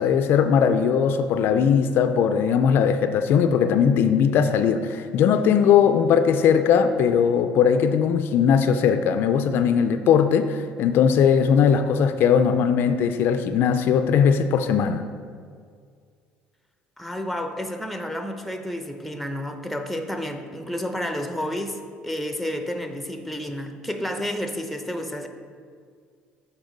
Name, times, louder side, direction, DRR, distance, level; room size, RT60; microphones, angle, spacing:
voice 1, 0.0-15.0, left 7 dB, 65° left, 9 dB, 0.3 m, -19 dB
voice 2, 17.0-25.3, equal, ahead, 6 dB, 0.6 m, -30 dB
7.0 x 4.2 x 3.9 m, 2.1 s
supercardioid pair, 80°, 4 cm